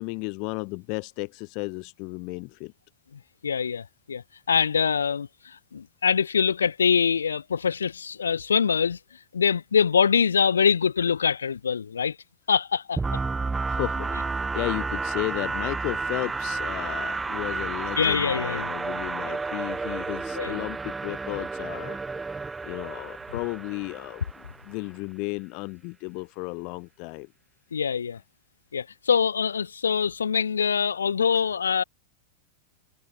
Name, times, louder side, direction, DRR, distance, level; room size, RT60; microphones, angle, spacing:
voice 1, 0.0-2.7 13.7-22.0 22.3-27.3 31.3-31.4, left 32 dB, 45° left, 4.0 m, -34 dB
voice 2, 3.4-4.2 4.5-9.0 9.3-12.2 12.5-13.0 18.0-18.7 20.4-20.6 27.7-28.2 28.7-31.8, left 6 dB, 70° left, 2.9 m, -24 dB
sound 1, 13.0-24.7, right 4 dB, 10° right, 6.0 m, -31 dB
figure-of-eight pair, 90°, 0 cm